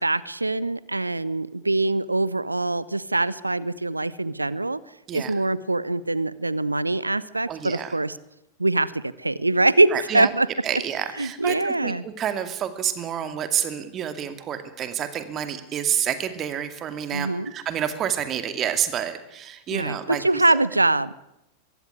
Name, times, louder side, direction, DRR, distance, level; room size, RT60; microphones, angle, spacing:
voice 1, 0.0-4.8 5.1-8.1 8.6-10.5 11.2-12.0 17.1-17.5 19.7-21.1, right 2 dB, 85° right, 20 dB, 0.8 m, -23 dB
voice 2, 7.5-7.9 9.9-10.3 10.6-20.6, right 9 dB, 30° right, 10 dB, 2.3 m, -29 dB
23.5 x 15.5 x 9.7 m, 0.87 s
figure-of-eight pair, 90°, 0 cm